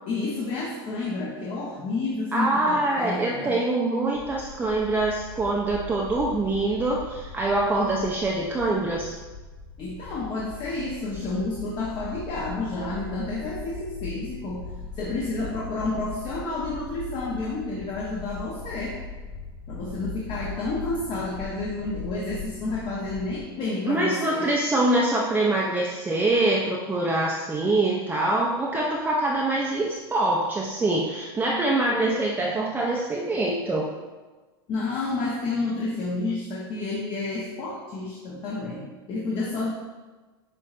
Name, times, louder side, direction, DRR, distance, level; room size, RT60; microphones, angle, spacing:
voice 1, 0.1-3.6 9.8-14.7 15.0-19.0 19.7-24.5 34.7-39.7, left 3 dB, 40° left, -4 dB, 0.8 m, -30 dB
voice 2, 2.3-9.1 23.9-33.9, right 2 dB, 15° right, -3 dB, 0.5 m, -24 dB
sound 1, 4.1-23.4, left 3 dB, 80° left, 1.1 m, -40 dB
7.0 x 3.0 x 2.5 m, 1.3 s
hypercardioid pair, 105°, 13 cm